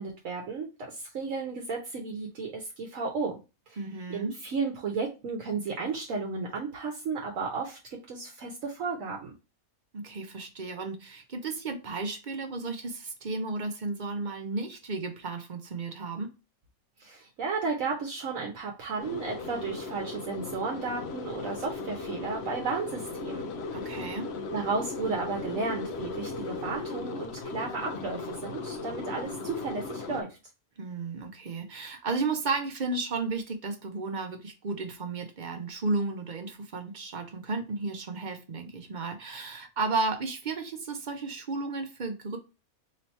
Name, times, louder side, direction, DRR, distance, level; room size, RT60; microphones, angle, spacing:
voice 1, 0.0-3.4 3.7-3.8 4.1-7.8 8.1-9.3 17.0-23.5 23.8-24.1 24.5-30.4, right 4 dB, 70° right, 1.1 m, -33 dB
voice 2, 3.8-4.3 9.9-16.3 23.7-24.3 30.8-42.4, right 3 dB, 50° right, 0.6 m, -33 dB
sound 1, 19.0-30.2, left 3 dB, 60° left, 0.7 m, -37 dB
3.1 x 2.8 x 4.3 m
omnidirectional pair, 1.5 m